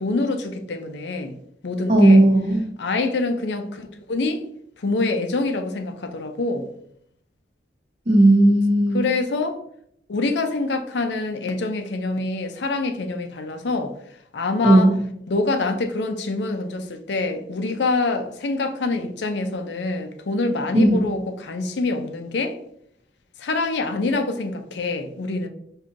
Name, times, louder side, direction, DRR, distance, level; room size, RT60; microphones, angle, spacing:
voice 1, 0.0-1.3 1.6-2.2 2.8-4.4 4.8-6.7 8.9-9.6 10.1-13.9 14.3-14.9 15.3-22.6 23.4-25.5, left 3 dB, 80° left, 0.5 m, -25 dB
voice 2, 1.9-2.6 8.1-9.0 14.6-15.0 20.7-21.1, right 1 dB, 35° right, 0.6 m, -15 dB
5.9 x 2.7 x 2.5 m
head